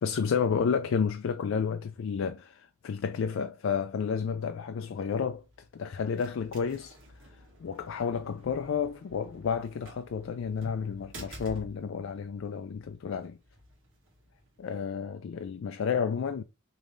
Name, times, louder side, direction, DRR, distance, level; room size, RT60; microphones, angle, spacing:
voice 1, 0.0-5.4 5.7-7.0 7.3-13.4 14.6-16.4, left 6 dB, 70° left, 0.3 m, -31 dB
sound 1, 5.2-14.8, equal, 70° right, 1.6 m, -51 dB
5.1 x 3.2 x 2.5 m
head